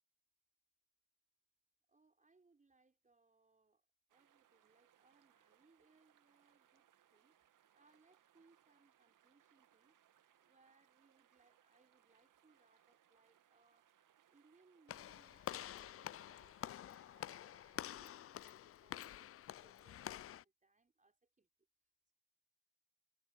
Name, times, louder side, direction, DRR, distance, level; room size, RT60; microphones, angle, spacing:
voice 1, 1.9-9.9 10.4-13.9 14.3-21.5 21.8-22.1, right 3 dB, 15° right, 4.7 m, -73 dB
sound 1, 4.1-18.1, right 10 dB, 40° right, 2.5 m, -73 dB
Walk footsteps / Slam, 14.9-20.4, left 12 dB, 30° left, 0.6 m, -48 dB
hypercardioid pair, 70°, 48 cm